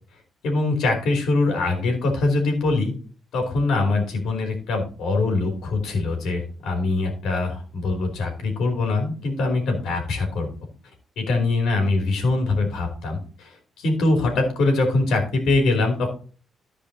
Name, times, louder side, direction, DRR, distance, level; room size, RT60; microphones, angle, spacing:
voice 1, 0.4-2.9 3.3-10.5 11.2-16.1, left 2 dB, 85° left, 2 dB, 3.0 m, -23 dB
14.0 x 4.9 x 4.1 m, 0.40 s
cardioid pair, 130°, 0 cm